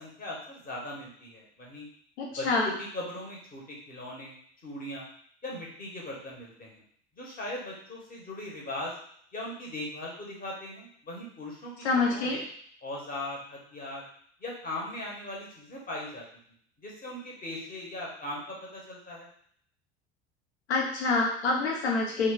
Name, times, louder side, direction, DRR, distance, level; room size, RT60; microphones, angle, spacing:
voice 1, 0.0-1.9 2.4-4.4 4.6-5.1 5.4-6.8 7.2-8.9 9.3-11.7 12.0-12.4 12.8-14.0 14.4-16.2 16.8-19.3, left 1 dB, 25° left, -2 dB, 1.4 m, -39 dB
voice 2, 2.2-2.7 11.8-12.4 20.7-22.3, left 3 dB, 75° left, -1 dB, 0.7 m, -26 dB
3.3 x 3.1 x 3.8 m, 0.63 s
figure-of-eight pair, 65°, 33 cm